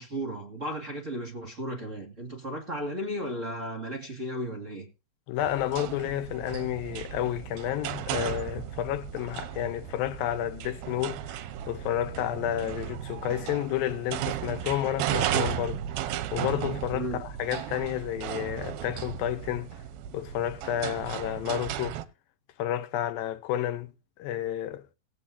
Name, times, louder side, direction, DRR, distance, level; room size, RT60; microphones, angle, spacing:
voice 1, 0.0-4.9 16.9-17.2, equal, 25° right, 1.9 m, -35 dB
voice 2, 5.3-11.4 11.7-15.8 16.3-19.7 20.1-22.0 22.6-23.9 24.2-24.8, left 12 dB, 85° left, 2.6 m, -31 dB
sound 1, 5.4-22.0, right 11 dB, 90° right, 2.7 m, -35 dB
19.0 x 8.5 x 2.8 m
omnidirectional pair, 4.2 m